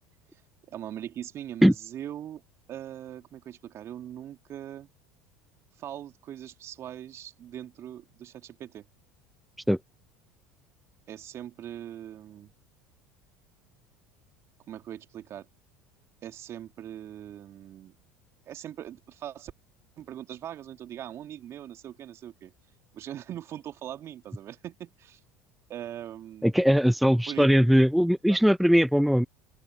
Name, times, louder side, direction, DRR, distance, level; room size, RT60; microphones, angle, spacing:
voice 1, 0.7-2.4 2.7-4.9 5.8-8.8 11.1-12.5 14.7-15.5 16.2-17.9 18.5-19.5 20.0-22.5 22.9-25.2 25.7-26.5 27.3-27.5 28.3-28.4, right 11 dB, 45° right, 2.8 m, -41 dB
voice 2, 26.4-29.3, equal, ahead, 0.5 m, -20 dB
open air
hypercardioid pair, 75°, 7 cm